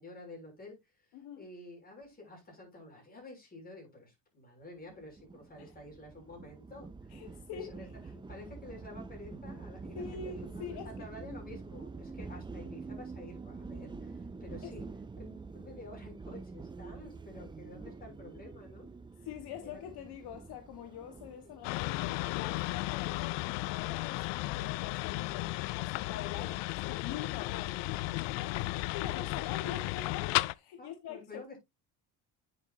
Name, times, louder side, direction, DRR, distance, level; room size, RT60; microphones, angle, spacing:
voice 1, 0.0-1.0 1.4-7.2 7.5-7.9 8.3-14.8 15.2-18.9 19.6-19.8 21.4-21.6 26.4-26.5 28.4-28.6 30.8-31.6, left 2 dB, 20° left, 7.1 m, -50 dB
voice 2, 1.1-1.5 5.6-5.7 7.1-7.8 9.9-11.1 14.6-14.8 19.2-26.5 26.9-27.8 28.2-28.5 28.9-31.5, left 8 dB, 65° left, 1.5 m, -44 dB
sound 1, 4.9-22.3, right 4 dB, 10° right, 0.5 m, -46 dB
sound 2, 21.6-30.5, left 20 dB, 85° left, 0.5 m, -34 dB
9.8 x 7.5 x 2.7 m
cardioid pair, 135°, 41 cm